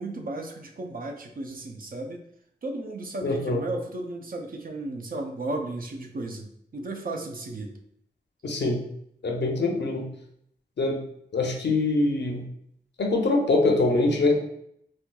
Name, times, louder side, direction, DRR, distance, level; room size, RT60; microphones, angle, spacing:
voice 1, 0.0-2.2 2.6-7.7, right 2 dB, 55° right, 3 dB, 0.5 m, -34 dB
voice 2, 3.2-3.6 8.4-8.8 9.2-10.1 10.8-11.0 11.3-12.5 13.0-14.4, left 2 dB, 80° left, 2 dB, 0.6 m, -23 dB
4.2 x 2.4 x 2.2 m, 0.71 s
wide cardioid pair, 95°, 18 cm